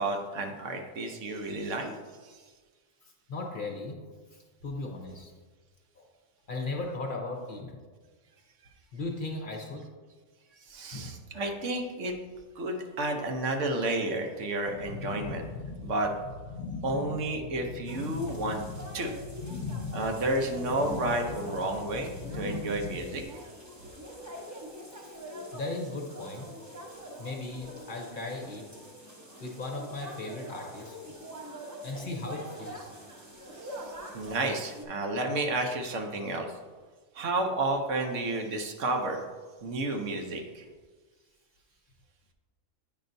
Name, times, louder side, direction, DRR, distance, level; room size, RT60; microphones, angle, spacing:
voice 1, 0.0-1.9 2.2-2.4 10.7-12.1 12.6-15.5 15.8-16.1 16.8-18.6 18.9-19.1 19.9-23.2 33.6-33.7 34.1-36.5 37.1-39.2 39.6-40.7, right 2 dB, 70° right, 3 dB, 1.1 m, -31 dB
voice 2, 3.0-4.0 4.3-5.3 6.0-6.1 6.5-7.8 8.9-9.9 10.9-11.2 24.0-28.9 29.4-31.6 31.8-32.9 33.5-33.6, left 2 dB, 50° left, 2 dB, 0.8 m, -38 dB
sound 1, 14.7-23.2, left 4 dB, 70° left, 0.9 m, -39 dB
sound 2, 17.9-34.8, right 1 dB, 15° right, 0.8 m, -45 dB
8.7 x 5.5 x 2.6 m, 1.4 s
omnidirectional pair, 1.3 m